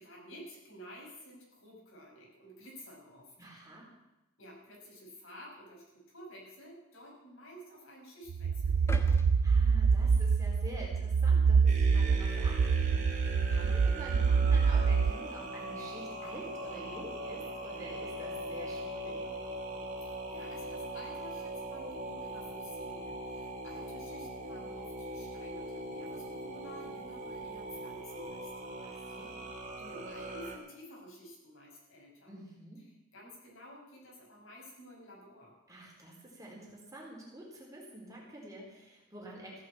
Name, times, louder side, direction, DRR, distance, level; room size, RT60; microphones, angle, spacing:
voice 1, 0.0-3.3 4.4-9.1 20.0-28.7 29.1-29.4 29.8-32.3 33.1-35.5, equal, 65° left, -2 dB, 5.8 m, -52 dB
voice 2, 3.4-3.9 9.4-19.2 28.8-29.4 32.3-32.8 35.7-39.6, right 1 dB, 15° right, -3 dB, 4.2 m, -48 dB
sound 1, 8.3-15.1, right 5 dB, 85° right, 0.4 m, -26 dB
sound 2, 8.9-11.0 11.5-11.7, left 1 dB, 10° left, 1.0 m, -46 dB
sound 3, 11.7-30.6, right 1 dB, 35° right, 2.6 m, -41 dB
15.5 x 8.5 x 8.7 m, 0.96 s
head